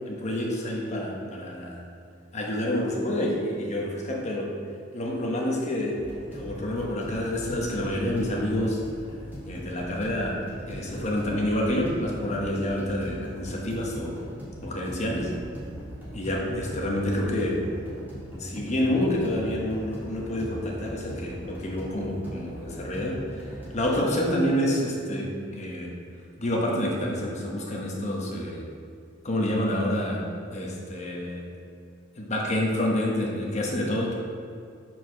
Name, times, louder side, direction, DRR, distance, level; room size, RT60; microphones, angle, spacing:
voice 1, 0.1-1.8 2.3-4.5 4.9-8.8 9.5-14.1 14.6-15.3 16.1-17.6 18.4-23.2 23.7-25.9 26.4-28.6 29.2-31.4 32.2-34.1, left 1 dB, 35° left, -2 dB, 1.0 m, -28 dB
sound 1, 6.0-24.0, equal, 10° right, 1.6 m, -40 dB
4.7 x 4.4 x 5.7 m, 2.3 s
head